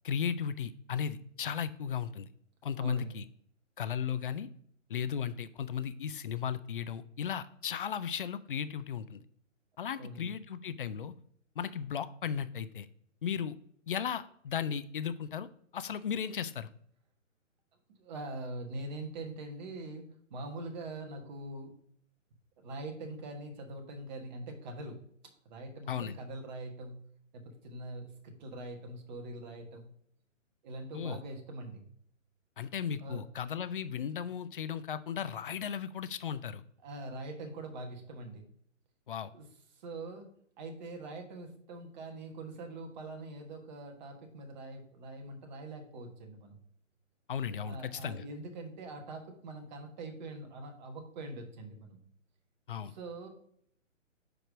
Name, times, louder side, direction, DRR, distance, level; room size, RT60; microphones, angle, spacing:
voice 1, 0.0-2.3 2.6-3.2 3.8-4.5 4.9-9.2 9.8-11.1 11.6-12.9 13.2-13.5 13.9-15.5 15.7-16.7 25.9-26.2 30.9-31.2 32.6-36.6 39.1-39.3 47.3-48.2 52.7-52.9, left 8 dB, 45° left, 13 dB, 0.4 m, -36 dB
voice 2, 2.8-3.2 10.0-10.3 18.0-21.7 22.6-25.0 25.4-27.0 27.3-29.9 30.6-31.9 33.0-33.3 36.8-38.4 39.3-39.5 39.7-46.6 47.6-52.0 52.8-53.3, right 2 dB, 35° right, 3 dB, 1.4 m, -43 dB
5.0 x 4.6 x 4.9 m, 0.66 s
figure-of-eight pair, 140°, 39 cm